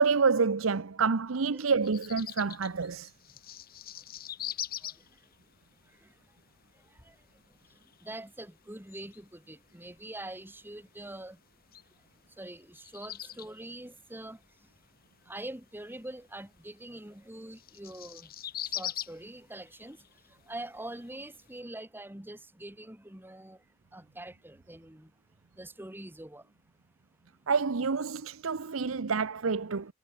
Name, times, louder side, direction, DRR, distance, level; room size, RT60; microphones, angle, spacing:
voice 1, 0.0-3.1 27.5-29.9, right 5 dB, 90° right, 0.8 m, -27 dB
sound 1, 1.8-21.6, left 11 dB, 50° left, 2.0 m, -45 dB
voice 2, 8.0-11.4 12.4-14.4 15.3-18.3 18.7-20.0 20.5-23.6 23.9-25.1 25.6-26.4, right 1 dB, 10° right, 1.7 m, -44 dB
head